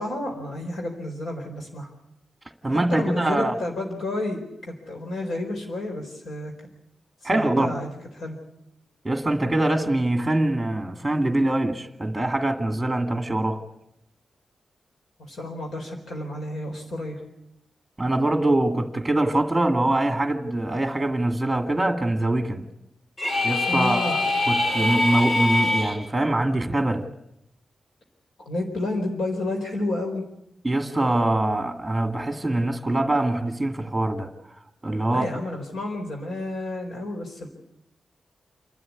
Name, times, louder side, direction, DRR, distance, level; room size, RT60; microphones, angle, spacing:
voice 1, 0.0-1.9 2.7-6.5 7.2-7.9 8.1-8.4 15.2-17.2 23.7-24.2 28.5-30.2 35.1-37.5, left 1 dB, 70° left, 2 dB, 4.4 m, -30 dB
voice 2, 2.6-3.5 7.2-7.8 9.0-13.6 18.0-22.6 23.4-27.0 30.6-34.3 34.8-35.3, right 1 dB, 10° right, 5 dB, 2.1 m, -23 dB
sound 1, 23.2-26.0, left 2 dB, 50° left, 4.7 m, -23 dB
28.5 x 13.0 x 9.6 m, 0.85 s
wide cardioid pair, 160°, 0 cm